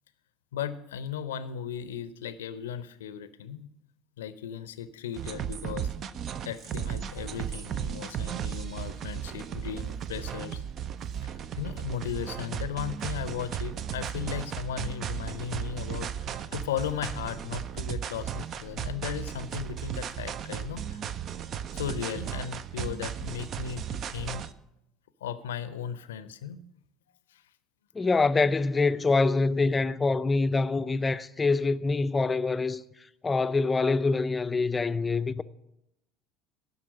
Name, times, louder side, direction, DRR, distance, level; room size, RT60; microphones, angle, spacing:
voice 1, 0.5-3.7 4.2-5.9 6.4-10.6 11.2-21.0 21.7-24.4 25.2-26.6 27.3-27.4, left 8 dB, 75° left, 0.6 m, -36 dB
sound 1, 5.1-24.5, right 9 dB, 45° right, 0.5 m, -35 dB
voice 2, 27.9-32.8 33.2-35.4, left 3 dB, 20° left, 0.5 m, -25 dB
12.0 x 5.8 x 7.3 m
figure-of-eight pair, 65°, 0 cm